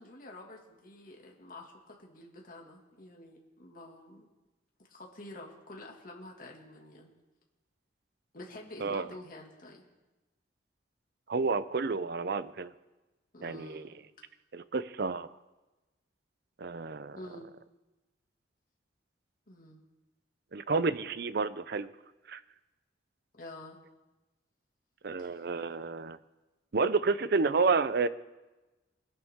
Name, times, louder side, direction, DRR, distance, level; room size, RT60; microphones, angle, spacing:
voice 1, 0.0-4.3 4.9-7.1 8.3-9.8 13.3-13.9 17.1-17.5 19.5-19.8 23.4-23.8 25.2-25.6, left 1 dB, 50° left, -1 dB, 2.1 m, -48 dB
voice 2, 11.3-12.7 13.4-13.9 14.5-15.3 16.6-17.2 20.5-21.9 22.3-22.4 25.0-26.2 26.7-28.1, right 4 dB, 55° right, 14 dB, 0.6 m, -30 dB
21.5 x 11.0 x 3.6 m, 1.1 s
head